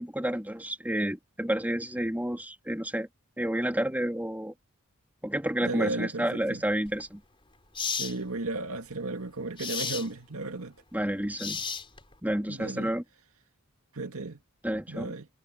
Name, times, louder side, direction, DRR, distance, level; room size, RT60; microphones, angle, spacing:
voice 1, 0.0-3.1 3.4-4.5 5.2-7.2 10.9-11.6 12.2-13.0 14.6-15.1, right 1 dB, 10° right, 3.5 m, -30 dB
voice 2, 5.6-6.6 7.9-10.7 12.5-12.9 13.9-14.4 14.9-15.3, right 2 dB, 80° right, 2.1 m, -34 dB
sound 1, 6.9-7.0 7.8-8.2 9.6-10.1 11.4-12.1, left 6 dB, 25° left, 4.5 m, -33 dB
head